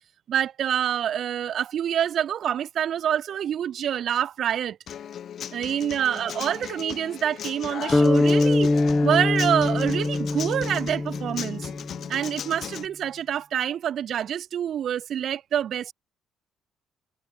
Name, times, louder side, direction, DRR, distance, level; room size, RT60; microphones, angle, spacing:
voice 1, 0.3-4.8 5.5-11.7 12.1-15.9, right 9 dB, 65° right, 2.2 m, -26 dB
Human voice / Acoustic guitar, 4.9-12.8, left 9 dB, 60° left, 1.5 m, -37 dB
sound 1, 7.9-12.2, left 2 dB, 20° left, 1.5 m, -23 dB
supercardioid pair, 60°, 0 cm